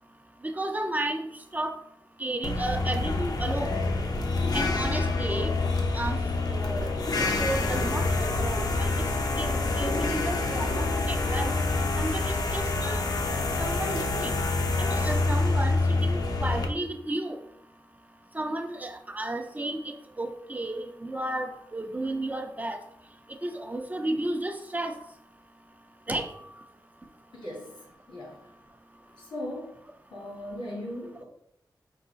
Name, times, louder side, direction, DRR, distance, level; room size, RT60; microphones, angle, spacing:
voice 1, 0.4-1.8 2.2-3.8 4.5-5.5 5.9-6.2 6.5-6.9 7.2-9.1 9.4-11.6 12.0-13.0 13.6-14.3 14.8-17.4 18.3-22.8 23.3-24.9 26.1-26.4, right 1 dB, 20° right, 6 dB, 0.4 m, -33 dB
sound 1, 2.4-16.7, left 3 dB, 55° left, 0.5 m, -27 dB
voice 2, 27.3-28.5 29.2-29.7 30.1-31.2, left 1 dB, 80° left, -3 dB, 1.7 m, -38 dB
4.6 x 2.4 x 3.8 m, 0.73 s
wide cardioid pair, 115°, 8 cm